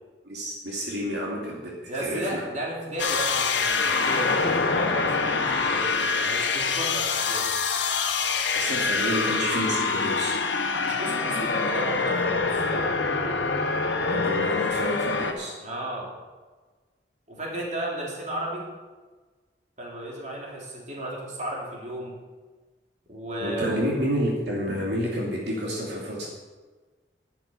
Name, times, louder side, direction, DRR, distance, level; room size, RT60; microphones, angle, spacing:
voice 1, 0.2-2.4 8.5-10.4 14.0-15.5 23.4-26.3, equal, 70° right, -3 dB, 2.6 m, -29 dB
voice 2, 1.9-7.5 10.8-12.9 15.6-16.1 17.3-18.7 19.8-22.1 23.1-23.8, right 1 dB, 45° right, -3 dB, 3.2 m, -33 dB
sound 1, 3.0-15.3, left 4 dB, 80° left, 1.3 m, -25 dB
11.5 x 10.5 x 5.6 m, 1.3 s
head